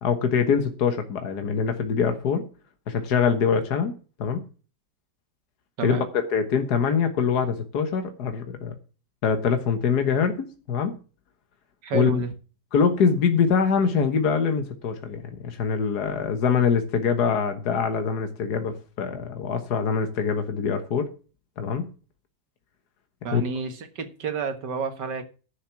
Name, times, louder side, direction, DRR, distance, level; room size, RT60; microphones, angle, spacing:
voice 1, 0.0-2.4 2.9-4.4 5.8-8.7 9.2-11.0 11.9-12.2 12.7-21.1 21.6-21.9 23.3-23.4, left 6 dB, 70° left, 7 dB, 1.8 m, -24 dB
voice 2, 11.8-12.3 23.2-25.2, right 5 dB, 85° right, 8 dB, 2.2 m, -30 dB
11.5 x 6.7 x 5.9 m, 0.36 s
omnidirectional pair, 1.8 m